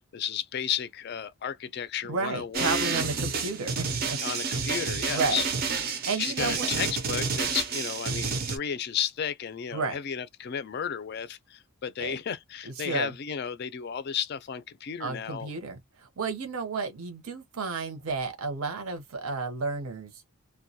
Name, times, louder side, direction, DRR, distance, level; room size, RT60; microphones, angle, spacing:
voice 1, 0.1-2.9 4.2-5.5 6.2-15.5, left 8 dB, 45° left, 0.3 m, -33 dB
voice 2, 2.0-4.2 5.1-5.4 6.0-6.7 9.7-10.0 12.0-12.2 12.6-13.1 15.0-20.2, right 4 dB, 75° right, 0.7 m, -32 dB
sound 1, 2.5-8.6, right 5 dB, 45° right, 0.4 m, -29 dB
2.2 x 2.1 x 2.7 m
head